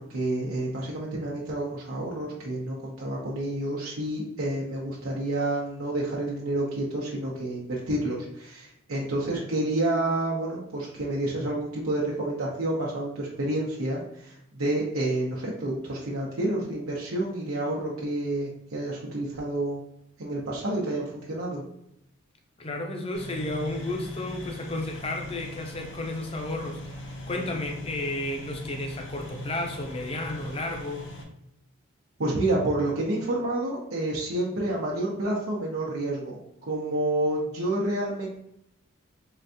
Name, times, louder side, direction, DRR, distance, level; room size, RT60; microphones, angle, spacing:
voice 1, 0.0-19.8 20.2-21.6 32.2-38.3, right 1 dB, 85° right, -4 dB, 0.8 m, -29 dB
voice 2, 22.6-31.1, left 1 dB, 25° left, 3 dB, 0.6 m, -33 dB
sound 1, 23.1-31.2, left 2 dB, 60° left, 0.8 m, -40 dB
3.9 x 3.4 x 2.7 m, 0.77 s
head